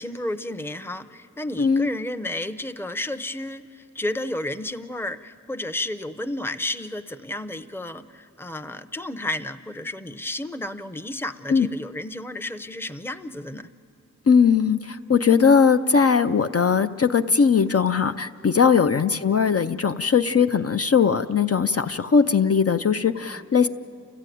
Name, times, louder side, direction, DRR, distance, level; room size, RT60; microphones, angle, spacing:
voice 1, 0.0-13.6 18.8-19.0, left 1 dB, 5° left, 9 dB, 0.6 m, -32 dB
voice 2, 1.6-1.9 11.5-11.7 14.3-23.7, left 6 dB, 45° left, 7 dB, 0.5 m, -19 dB
29.5 x 14.0 x 9.2 m, 2.5 s
wide cardioid pair, 85°, 32 cm